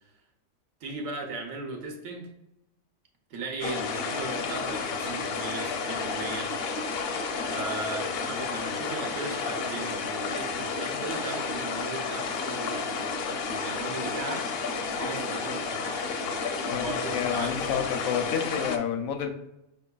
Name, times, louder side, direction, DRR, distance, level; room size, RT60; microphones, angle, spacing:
voice 1, 0.8-2.3 3.3-6.5 7.5-13.1 13.5-14.5 15.0-16.1 16.7-17.5, right 3 dB, 70° right, 2 dB, 1.3 m, -37 dB
sound 1, 3.6-18.8, left 4 dB, 60° left, 0.7 m, -31 dB
voice 2, 17.1-19.3, left 8 dB, 80° left, 7 dB, 1.0 m, -29 dB
5.6 x 3.2 x 2.3 m, 0.89 s
omnidirectional pair, 1.4 m